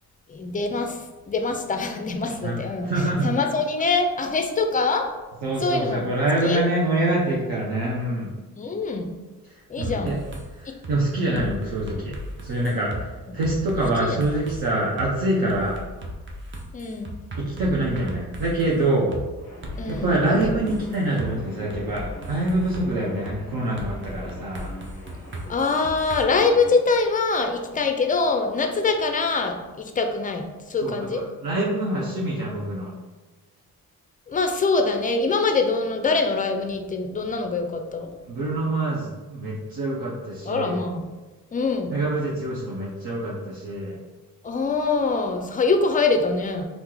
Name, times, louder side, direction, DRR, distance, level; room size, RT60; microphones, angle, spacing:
voice 1, 0.3-2.9 3.2-5.1 5.6-6.1 6.4-6.6 8.6-9.1 9.7-10.2 10.7-10.8 11.3-11.5 14.0-14.2 16.7-17.1 19.8-20.1 25.5-31.2 34.3-38.1 40.5-41.1 41.5-42.0 44.4-46.7, left 4 dB, 20° left, 5 dB, 0.4 m, -24 dB
voice 2, 2.4-3.3 5.4-8.3 9.5-10.2 10.5-15.8 17.4-19.1 19.8-24.7 30.8-32.9 38.3-40.8 41.9-44.0, right 1 dB, 65° right, -5 dB, 0.7 m, -25 dB
sound 1, 9.8-10.4 10.8-11.0 11.3-13.0 13.4-14.6 15.0-15.1 15.5-18.7 19.1-19.2 19.6-21.3 21.7-22.9 23.3-23.4 23.8-26.2, equal, 30° right, 0.6 m, -36 dB
sound 2, 19.4-26.8, left 2 dB, 5° left, 1.2 m, -44 dB
2.9 x 2.0 x 3.7 m, 1.2 s
cardioid pair, 60°, 39 cm